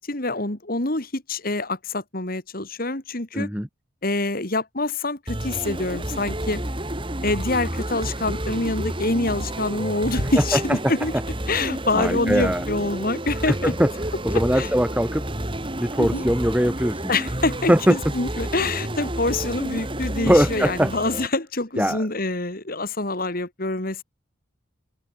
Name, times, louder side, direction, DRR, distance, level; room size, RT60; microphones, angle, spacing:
voice 1, 0.0-3.5 4.0-6.6 7.2-11.1 11.5-13.7 14.6-14.7 16.0-16.2 17.1-24.0, left 2 dB, 45° left, 2.5 m, -26 dB
voice 2, 3.3-3.7 10.4-10.9 12.0-12.6 13.5-13.9 14.2-15.3 15.8-17.1 17.7-18.0 20.2-20.9 21.8-22.0, equal, 5° right, 3.1 m, -21 dB
sound 1, 5.3-21.3, right 1 dB, 25° right, 3.5 m, -30 dB
head